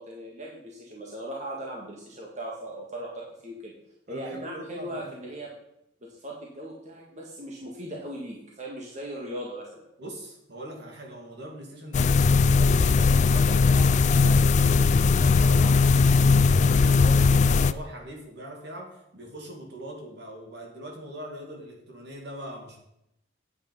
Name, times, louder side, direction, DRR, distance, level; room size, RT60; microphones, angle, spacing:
voice 1, 0.0-3.7 4.1-5.5 6.0-9.9, right 1 dB, 40° right, -2 dB, 1.7 m, -38 dB
voice 2, 4.1-5.1 10.0-12.1 12.5-22.8, right 1 dB, 60° right, 1 dB, 2.4 m, -41 dB
sound 1, 11.9-17.7, left 4 dB, 35° left, 0.3 m, -19 dB
9.5 x 8.4 x 5.3 m, 0.81 s
head